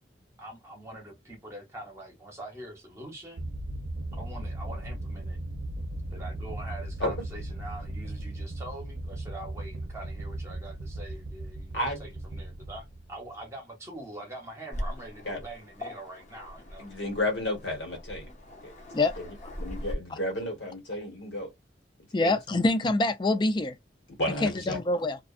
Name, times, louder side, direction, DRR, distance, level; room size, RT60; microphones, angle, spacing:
voice 1, 0.4-3.4 4.2-5.4 6.1-16.9, right 1 dB, 15° right, 0.9 m, -44 dB
sound 1, 3.4-13.5, right 1 dB, 80° right, 0.6 m, -37 dB
voice 2, 11.7-12.1 15.2-15.4 16.8-18.3 18.6-18.7 19.2-21.5 22.2-22.6 24.2-24.8, left 1 dB, 80° left, 1.4 m, -32 dB
Waves surf, 14.7-19.9, equal, 40° left, 0.8 m, -41 dB
voice 3, 22.1-23.8 24.4-25.2, left 2 dB, 25° left, 0.3 m, -25 dB
2.5 x 2.3 x 2.4 m
head